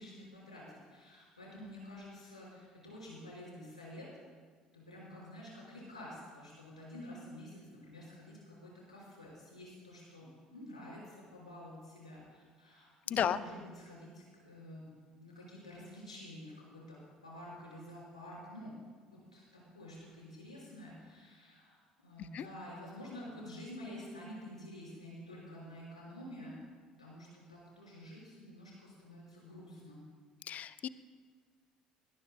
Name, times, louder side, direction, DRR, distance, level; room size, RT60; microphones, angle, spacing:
voice 1, 0.0-4.1 4.7-14.9 15.2-18.8 19.1-21.8 22.0-26.6 27.0-30.0, left 1 dB, 85° left, -5 dB, 5.1 m, -49 dB
voice 2, 30.5-30.9, left 9 dB, 45° left, 15 dB, 0.6 m, -32 dB
22.5 x 19.0 x 2.2 m, 1.6 s
figure-of-eight pair, 55°, 4 cm